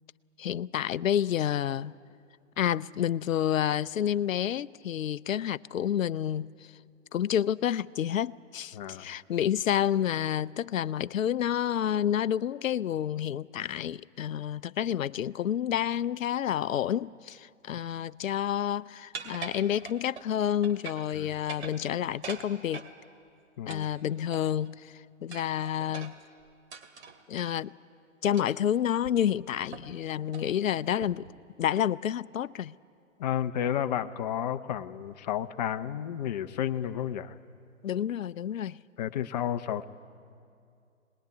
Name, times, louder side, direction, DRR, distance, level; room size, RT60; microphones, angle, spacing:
voice 1, 0.4-1.9 2.6-6.5 7.1-22.9 23.7-26.1 27.3-27.7 28.2-31.3 31.6-32.7 37.8-38.8, left 10 dB, 75° left, 0.6 m, -29 dB
voice 2, 8.7-9.1 21.1-21.3 23.6-23.9 33.2-37.3 39.0-39.8, left 10 dB, 30° left, 0.8 m, -31 dB
sound 1, 19.1-20.3 20.6-21.1 21.4-22.9 23.7-24.7 25.3-27.5 28.3-28.6 29.0-29.1 29.7-30.0 30.3-30.5 31.0-31.3, right 5 dB, 55° right, 2.4 m, -43 dB
23.0 x 20.0 x 9.5 m
hypercardioid pair, 135°, 40 cm